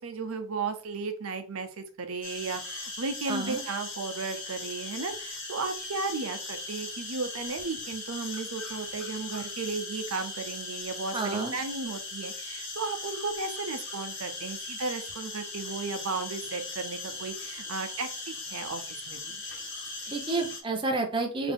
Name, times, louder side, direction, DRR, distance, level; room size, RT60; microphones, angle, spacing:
voice 1, 0.0-19.4, right 4 dB, 80° right, 8 dB, 0.6 m, -35 dB
sound 1, 2.2-20.6, left 3 dB, 55° left, 1.2 m, -39 dB
voice 2, 3.3-3.6 11.1-11.5 20.1-21.5, right 3 dB, 25° right, 3 dB, 0.6 m, -30 dB
3.9 x 2.7 x 3.6 m, 0.37 s
head